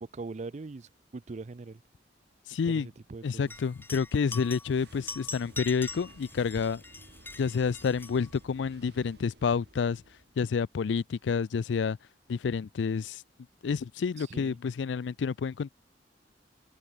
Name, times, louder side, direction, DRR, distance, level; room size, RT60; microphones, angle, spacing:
voice 1, 0.0-1.8 2.7-3.5 14.2-14.6, right 3 dB, 40° right, 0.5 m, -42 dB
voice 2, 2.5-2.9 3.2-6.8 7.4-10.0 10.4-12.0 12.3-13.2 13.6-15.7, left 5 dB, 80° left, 0.4 m, -29 dB
sound 1, 3.5-8.4, left 3 dB, 10° left, 1.3 m, -43 dB
sound 2, 4.7-10.5, right 2 dB, 65° right, 2.1 m, -55 dB
head